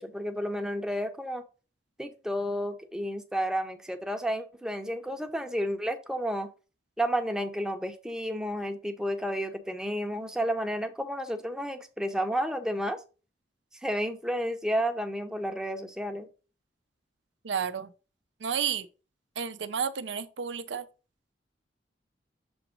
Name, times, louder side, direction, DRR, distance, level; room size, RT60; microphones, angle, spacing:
voice 1, 0.0-1.4 2.0-6.5 7.0-13.0 13.8-16.3, equal, 5° right, 0.7 m, -31 dB
voice 2, 17.4-17.9 18.4-18.9 19.4-20.8, right 7 dB, 75° right, 0.5 m, -31 dB
7.0 x 2.9 x 5.1 m
head